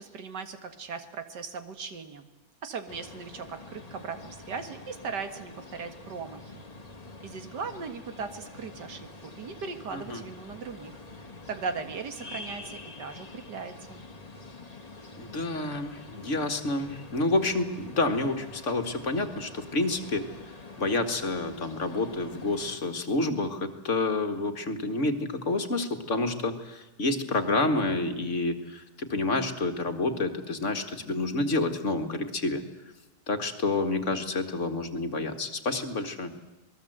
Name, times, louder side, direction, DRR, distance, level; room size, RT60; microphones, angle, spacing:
voice 1, 0.0-2.3 2.6-6.6 7.2-11.0 11.5-14.0, right 5 dB, 85° right, 9 dB, 2.3 m, -38 dB
sound 1, 2.9-22.8, left 3 dB, 25° left, 1.9 m, -46 dB
voice 2, 15.2-20.3 20.8-32.6 33.3-36.3, left 2 dB, 45° left, 7 dB, 2.0 m, -29 dB
27.0 x 20.0 x 7.9 m, 1.0 s
omnidirectional pair, 1.8 m